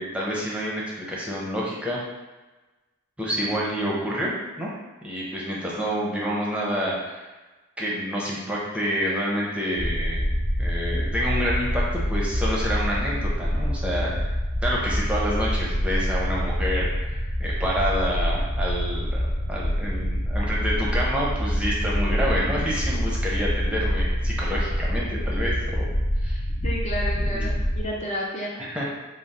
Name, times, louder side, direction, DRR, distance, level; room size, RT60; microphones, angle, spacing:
voice 1, 0.0-2.0 3.2-4.7 5.0-7.2 7.8-10.2 10.6-14.3 14.6-25.9 26.2-26.4 27.3-27.5 28.6-28.8, equal, 5° right, -5 dB, 0.7 m, -28 dB
sound 1, 9.8-27.8, equal, 45° left, 1.3 m, -26 dB
voice 2, 26.6-28.7, equal, 30° left, -3 dB, 0.5 m, -31 dB
3.8 x 2.1 x 4.1 m, 1.2 s
head